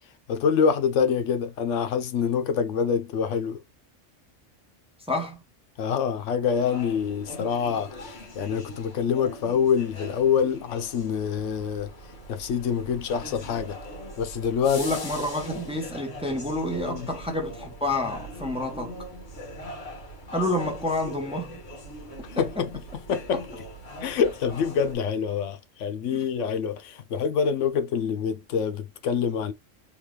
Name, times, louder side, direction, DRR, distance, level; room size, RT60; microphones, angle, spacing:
voice 1, 0.3-3.6 5.8-11.9 12.3-13.8 14.2-14.8 16.8-17.1 22.4-22.7 23.1-23.4 24.0-29.5, left 7 dB, 80° left, 0.9 m, -26 dB
voice 2, 5.1-5.4 14.7-18.9 20.3-21.6 22.4-22.6 23.3-23.4 26.1-26.2, left 1 dB, 5° right, 0.7 m, -29 dB
sound 1, 6.5-24.9, equal, 60° left, 1.6 m, -41 dB
3.8 x 2.4 x 3.1 m
omnidirectional pair, 1.3 m